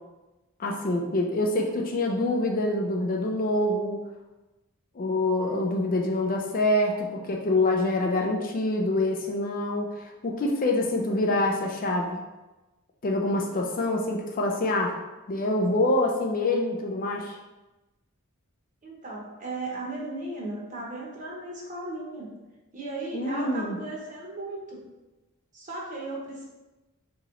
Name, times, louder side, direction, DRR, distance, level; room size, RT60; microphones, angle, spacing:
voice 1, 0.6-4.0 5.0-12.2 13.0-15.0 15.3-17.4 23.1-23.8, left 2 dB, 40° left, 1 dB, 0.4 m, -26 dB
voice 2, 13.3-13.8 18.8-22.3 22.7-24.8 25.5-26.4, right 2 dB, 35° right, -3 dB, 0.8 m, -36 dB
3.0 x 2.9 x 3.7 m, 1.1 s
head